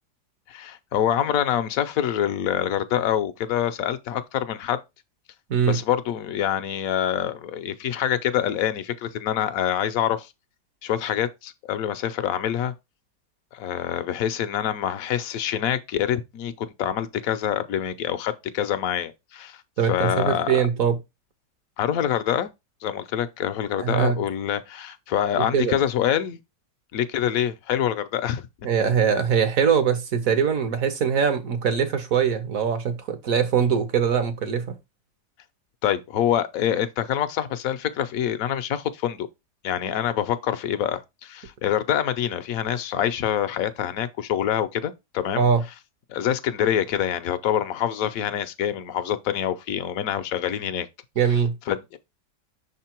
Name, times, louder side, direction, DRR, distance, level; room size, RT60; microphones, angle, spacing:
voice 1, 0.5-4.8 5.6-10.3 10.8-12.7 13.5-19.6 19.9-20.7 21.8-22.5 22.8-26.4 26.9-28.4 35.8-39.3 39.6-45.5 46.1-50.9 51.7-52.0, left 10 dB, 65° left, 0.9 m, -26 dB
voice 2, 19.8-21.0 23.8-24.2 25.5-25.7 28.6-34.7 45.4-45.6 51.2-51.5, right 7 dB, 55° right, 1.2 m, -22 dB
6.3 x 3.7 x 4.4 m
omnidirectional pair, 1.9 m